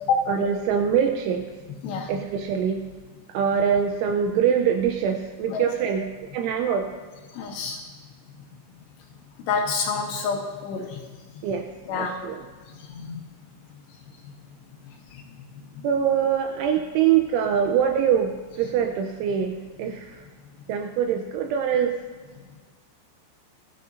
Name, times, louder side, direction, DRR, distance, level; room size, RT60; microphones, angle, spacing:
voice 1, 0.3-1.4 2.1-2.8 3.3-6.9 11.4-11.7 11.9-12.5 15.8-18.3 18.6-20.3 20.7-22.0, right 8 dB, 85° right, 4 dB, 3.0 m, -24 dB
voice 2, 7.4-7.8 9.5-11.0 11.9-12.1 12.9-13.2, left 4 dB, 75° left, 0 dB, 2.8 m, -27 dB
21.0 x 12.5 x 2.7 m, 1.5 s
omnidirectional pair, 5.8 m